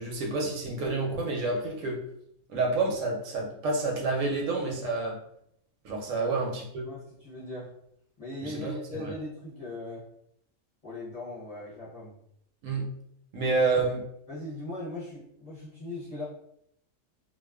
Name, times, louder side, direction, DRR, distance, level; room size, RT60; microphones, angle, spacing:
voice 1, 0.0-2.0 2.5-5.2 5.8-6.9 8.4-9.1 12.6-12.9 13.3-14.0, right 3 dB, 75° right, 0 dB, 0.9 m, -29 dB
voice 2, 6.8-7.7 8.2-10.1 10.8-12.2 13.5-13.8 14.3-16.2, left 2 dB, 35° left, -10 dB, 0.6 m, -39 dB
2.4 x 2.3 x 2.2 m, 0.72 s
omnidirectional pair, 1.4 m